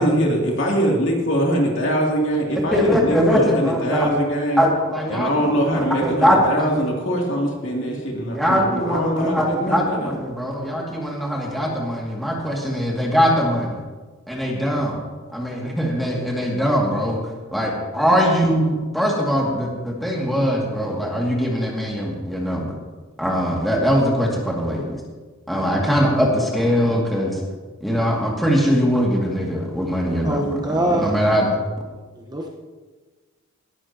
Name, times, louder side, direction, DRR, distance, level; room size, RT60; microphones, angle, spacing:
voice 1, 0.0-4.7 5.1-10.2, equal, 60° left, -1 dB, 3.0 m, -22 dB
voice 2, 2.7-4.1 4.6-6.9 8.3-13.8 14.3-15.0 15.3-17.2 17.5-22.7 23.2-24.9 25.5-27.4 27.8-31.5, equal, ahead, -3 dB, 2.4 m, -21 dB
voice 3, 30.2-31.1 32.2-32.5, right 1 dB, 20° right, 0 dB, 1.2 m, -23 dB
19.0 x 13.0 x 3.0 m, 1.3 s
head